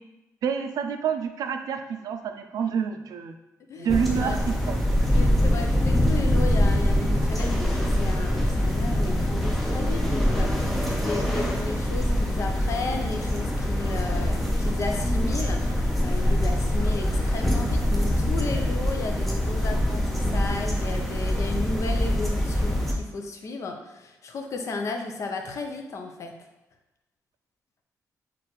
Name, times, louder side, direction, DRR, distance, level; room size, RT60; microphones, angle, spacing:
voice 1, 0.4-3.4 3.8-4.8, right 7 dB, 80° right, 7 dB, 0.4 m, -28 dB
voice 2, 3.7-4.4 5.1-26.3, left 3 dB, 50° left, 4 dB, 0.5 m, -34 dB
sound 1, 3.9-22.9, left 1 dB, ahead, 0.5 m, -24 dB
6.3 x 2.5 x 3.0 m, 0.99 s
wide cardioid pair, 150°, 6 cm